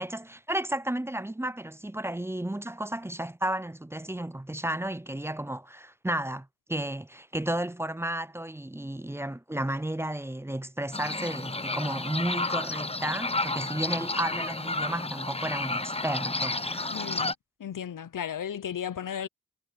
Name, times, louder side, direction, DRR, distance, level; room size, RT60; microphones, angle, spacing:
voice 1, 0.0-17.0, right 1 dB, 10° right, 0.4 m, -33 dB
sound 1, 10.9-17.3, left 2 dB, 20° left, 0.9 m, -31 dB
voice 2, 16.9-17.3 17.6-19.3, left 9 dB, 85° left, 0.7 m, -34 dB
wide cardioid pair, 65°, 31 cm